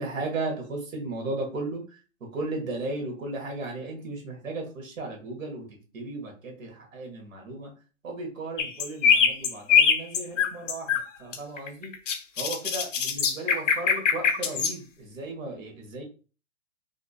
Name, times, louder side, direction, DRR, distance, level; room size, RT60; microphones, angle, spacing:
voice 1, 0.0-1.8 2.3-5.6 5.9-7.7 8.0-10.9 11.2-11.9 12.4-16.0, right 2 dB, 70° right, 1 dB, 1.5 m, -35 dB
sound 1, 8.6-11.0 11.3-14.7, left 7 dB, 65° left, 0.7 m, -23 dB
3.7 x 2.6 x 2.3 m, 0.37 s
hypercardioid pair, 135°, 41 cm